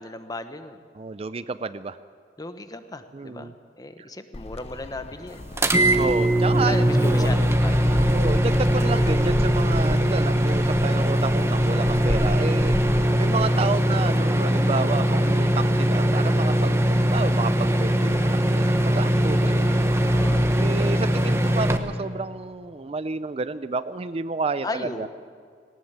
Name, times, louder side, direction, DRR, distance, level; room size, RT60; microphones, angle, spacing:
voice 1, 0.0-0.8 2.4-5.5 6.6-8.0 19.4-20.5 24.6-25.1, left 2 dB, 20° left, 9 dB, 1.1 m, -36 dB
voice 2, 0.9-2.0 3.1-3.5 5.9-7.3 8.1-12.7 13.2-19.8 20.6-25.1, right 4 dB, 35° right, 13 dB, 0.5 m, -30 dB
Gull seagull, 4.3-13.7, left 2 dB, 35° left, 0.6 m, -33 dB
sound 1, 5.6-21.8, equal, 15° right, 1.2 m, -21 dB
18.5 x 18.5 x 8.1 m, 2.2 s
head